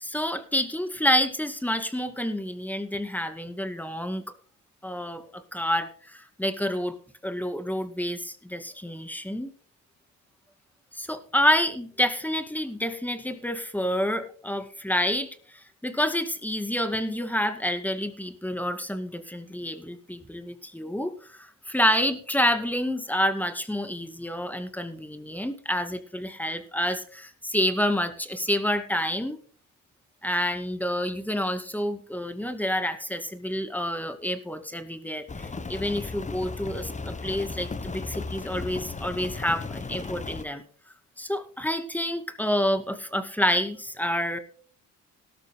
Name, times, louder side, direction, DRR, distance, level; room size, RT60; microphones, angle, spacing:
voice 1, 0.0-4.2 4.8-6.9 7.2-9.5 10.9-29.4 30.2-40.6 41.2-44.4, equal, 5° left, 9 dB, 2.1 m, -28 dB
Rain, 35.3-40.5, left 3 dB, 25° left, 1.2 m, -36 dB
18.0 x 13.0 x 2.2 m, 0.43 s
cardioid pair, 90°, 30 cm